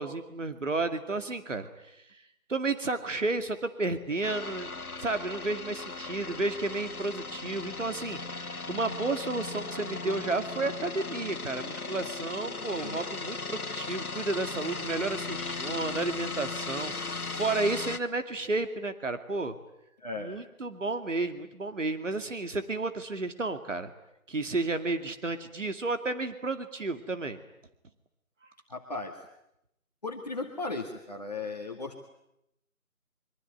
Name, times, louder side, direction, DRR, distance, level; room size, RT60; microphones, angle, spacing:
voice 1, 0.0-4.7 5.0-19.6 20.2-23.9 24.3-27.4, right 3 dB, 60° right, 8 dB, 2.4 m, -32 dB
sound 1, 4.2-18.0, left 3 dB, 85° left, 1.8 m, -37 dB
voice 2, 20.0-20.4 28.7-29.2 30.0-32.0, left 3 dB, 30° left, 0 dB, 2.0 m, -36 dB
25.5 x 24.0 x 9.4 m, 0.81 s
figure-of-eight pair, 175°, 43 cm